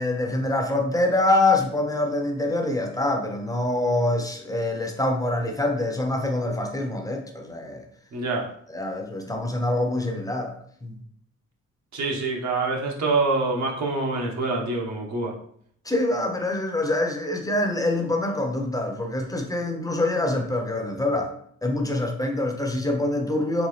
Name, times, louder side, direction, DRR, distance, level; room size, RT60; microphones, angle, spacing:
voice 1, 0.0-7.8 8.7-10.5 10.8-11.0 15.8-21.3 21.6-23.7, left 2 dB, 10° left, 3 dB, 0.7 m, -25 dB
voice 2, 8.1-8.5 11.9-15.3, right 3 dB, 65° right, -1 dB, 1.2 m, -25 dB
4.2 x 3.3 x 3.2 m, 0.63 s
cardioid pair, 90°, 30 cm